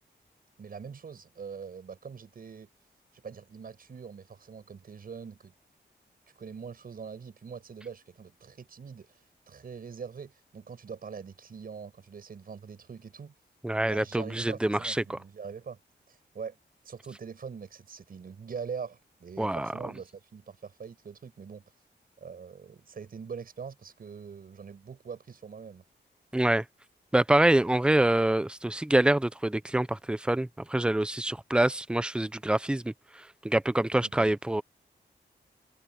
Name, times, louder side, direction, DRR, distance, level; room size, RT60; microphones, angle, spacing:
voice 1, 0.6-2.7 3.1-5.5 6.4-9.2 9.5-13.3 13.9-15.8 16.1-16.6 16.8-21.6 22.2-25.8 34.0-34.3, right 6 dB, 50° right, 7.2 m, -43 dB
voice 2, 13.6-15.2 19.4-19.7 26.3-26.6 27.1-34.6, right 1 dB, 5° right, 0.5 m, -26 dB
wide cardioid pair, 175°, 19 cm